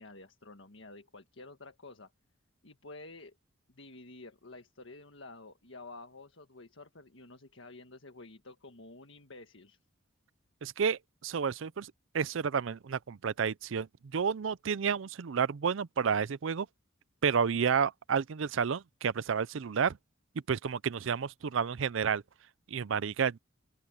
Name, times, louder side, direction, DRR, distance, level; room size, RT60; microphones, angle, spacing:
voice 1, 0.0-2.1 2.6-3.4 3.7-9.8, left 2 dB, 65° left, 1.7 m, -50 dB
voice 2, 10.6-13.9 14.1-16.7 17.2-20.0 20.5-22.2 22.7-23.4, right 6 dB, 65° right, 0.5 m, -30 dB
open air
head